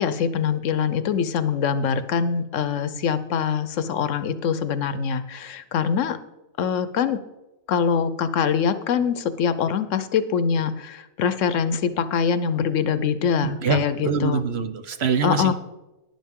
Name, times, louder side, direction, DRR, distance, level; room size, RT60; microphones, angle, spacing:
voice 1, 0.0-6.2 6.6-7.2 7.7-14.4 15.2-15.5, left 7 dB, 70° left, 13 dB, 1.0 m, -24 dB
voice 2, 13.4-15.5, right 6 dB, 60° right, 9 dB, 0.9 m, -24 dB
11.5 x 10.5 x 3.6 m, 1.0 s
omnidirectional pair, 1.4 m